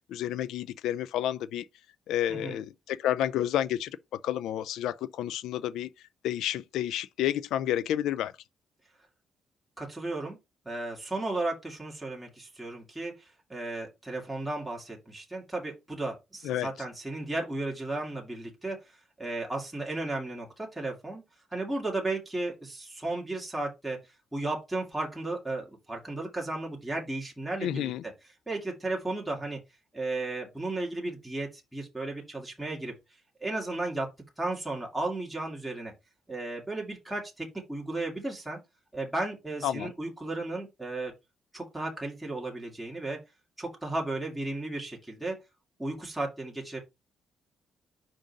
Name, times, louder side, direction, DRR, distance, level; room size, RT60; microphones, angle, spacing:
voice 1, 0.1-1.6 2.1-5.9 6.2-8.3 16.4-16.7 27.6-28.0 39.6-39.9, left 11 dB, 85° left, 0.4 m, -30 dB
voice 2, 9.8-10.4 10.7-18.8 19.2-21.2 21.5-24.0 24.3-27.9 28.5-29.6 29.9-32.9 33.4-34.1 34.4-35.9 36.3-38.6 38.9-41.1 41.5-43.2 43.6-45.4 45.8-46.8, right 2 dB, 5° right, 2.2 m, -34 dB
5.2 x 3.8 x 5.2 m
cardioid pair, 90°, 0 cm